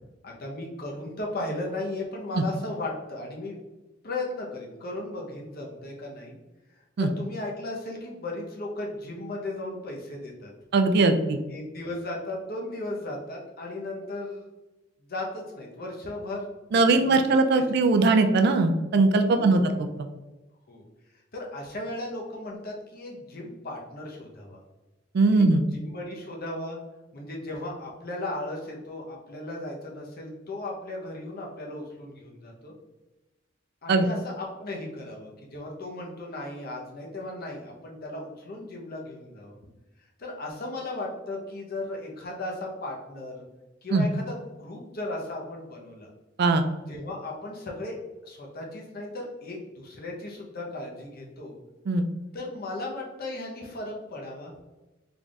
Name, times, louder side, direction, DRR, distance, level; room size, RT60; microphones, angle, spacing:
voice 1, 0.2-3.6 4.0-6.4 7.0-10.5 11.5-14.5 15.1-16.5 16.7-17.2 17.5-17.6 18.0-18.1 19.3-19.7 20.7-20.8 21.3-24.6 25.3-25.4 25.7-26.8 27.1-32.7 33.8-39.6 40.2-43.4 43.8-46.1 46.9-48.0 48.2-51.5 52.3-54.5, left 2 dB, 50° left, -1 dB, 0.8 m, -36 dB
voice 2, 10.7-11.4 16.7-19.6 25.1-25.6 33.9-34.1 43.9-44.1 46.4-46.6 51.9-52.1, right 3 dB, 55° right, 7 dB, 0.4 m, -20 dB
3.9 x 3.4 x 2.4 m, 1.1 s
head